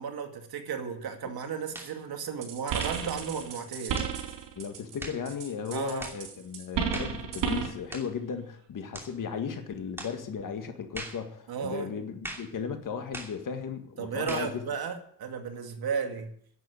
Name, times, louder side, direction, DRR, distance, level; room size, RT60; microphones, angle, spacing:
voice 1, 0.0-4.0 5.7-6.1 11.5-11.9 14.0-16.3, right 6 dB, 60° right, 2.3 m, -34 dB
sound 1, 1.7-2.0 2.8-3.1 3.9-4.2 5.0-5.2 6.0-6.2 6.9-7.2 7.9-8.2 8.9-9.2 10.0-10.2 10.9-11.2 12.2-12.5 13.1-13.4 14.3-14.5, right 1 dB, 5° right, 2.7 m, -40 dB
sound 2, 2.4-5.0 5.3-7.8, right 7 dB, 90° right, 3.9 m, -33 dB
voice 2, 4.6-14.6, left 6 dB, 50° left, 1.9 m, -36 dB
11.0 x 8.3 x 9.7 m
cardioid pair, 145°, 42 cm